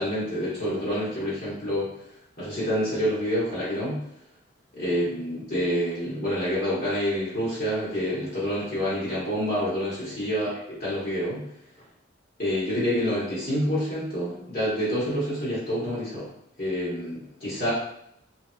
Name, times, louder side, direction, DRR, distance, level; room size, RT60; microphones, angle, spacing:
voice 1, 0.0-1.9 2.4-4.0 4.7-11.4 12.4-16.3 16.6-17.7, equal, 50° left, -9 dB, 1.0 m, -27 dB
3.3 x 2.8 x 2.2 m, 0.75 s
head